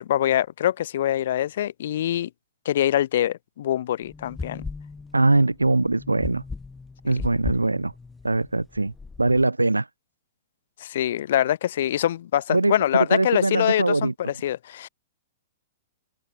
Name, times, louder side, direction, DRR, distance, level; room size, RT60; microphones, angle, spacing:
voice 1, 0.0-2.3 2.6-4.7 10.8-14.9, left 12 dB, 55° left, 0.6 m, -24 dB
sound 1, 4.0-9.4, left 4 dB, 10° left, 0.5 m, -38 dB
voice 2, 5.1-6.4 7.0-7.9 8.2-9.9 12.5-14.3, right 2 dB, 80° right, 0.5 m, -22 dB
figure-of-eight pair, 105°, 0 cm